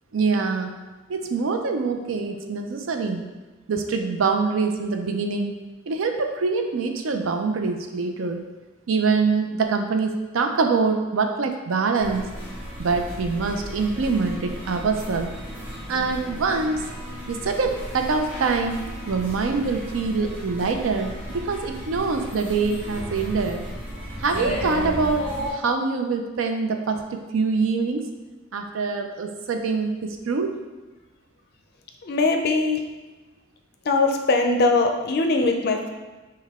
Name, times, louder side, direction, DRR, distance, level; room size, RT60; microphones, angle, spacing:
voice 1, 0.1-0.7 1.1-3.3 3.7-5.5 5.9-8.4 8.9-12.2 12.8-15.3 15.9-16.9 17.3-18.8 19.1-23.6 24.2-27.0 27.3-28.1 28.5-30.6, right 4 dB, 85° right, 5 dB, 0.5 m, -24 dB
sound 1, 12.0-25.5, equal, 10° right, 1.3 m, -35 dB
voice 2, 32.0-32.8 33.8-35.9, left 3 dB, 50° left, 4 dB, 0.4 m, -21 dB
5.5 x 2.2 x 3.5 m, 1.2 s
head